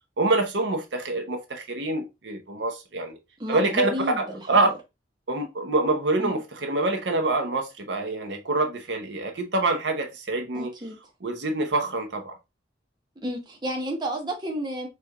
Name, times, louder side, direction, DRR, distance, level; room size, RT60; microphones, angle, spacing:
voice 1, 0.2-3.2 3.5-3.9 4.2-4.7 5.3-10.7 11.2-12.3, right 2 dB, 75° right, 0.9 m, -26 dB
voice 2, 3.4-4.7 6.2-6.4 10.5-11.0 13.2-14.9, equal, 25° right, 0.9 m, -31 dB
4.4 x 2.6 x 3.4 m
head